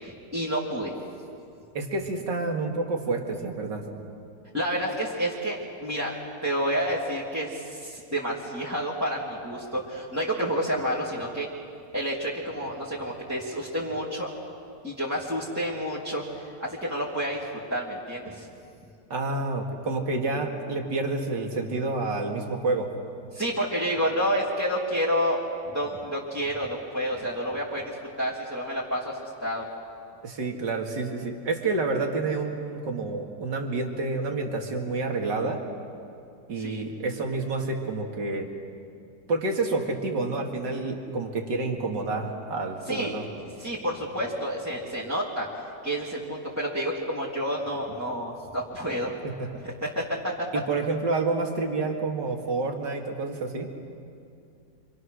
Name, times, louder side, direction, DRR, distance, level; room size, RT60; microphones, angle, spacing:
voice 1, 0.0-0.9 4.5-6.2 6.4-11.5 11.9-14.3 14.8-16.2 16.6-18.5 23.3-25.4 25.6-27.9 28.2-29.6 36.6-36.8 42.9-43.1 43.6-45.5 45.8-49.1 49.6-50.3, equal, 10° right, -6 dB, 2.6 m, -29 dB
voice 2, 1.7-3.8 19.1-22.9 30.2-35.6 36.5-38.5 39.3-43.2 49.2-49.5 50.5-53.7, right 3 dB, 80° right, 2 dB, 2.9 m, -29 dB
29.0 x 25.5 x 6.4 m, 2.5 s
omnidirectional pair, 1.8 m